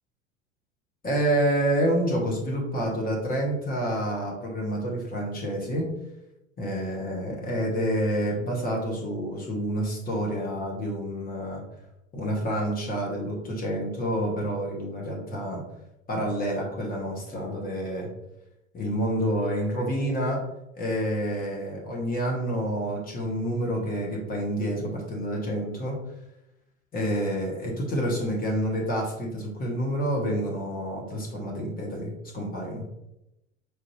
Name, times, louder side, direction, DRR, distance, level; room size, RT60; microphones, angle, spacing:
voice 1, 1.0-5.9 6.6-11.6 12.1-15.6 16.1-18.1 18.7-20.4 20.8-26.0 26.9-32.9, equal, 25° left, -1 dB, 1.0 m, -28 dB
4.4 x 2.5 x 3.0 m, 0.87 s
figure-of-eight pair, 80°, 36 cm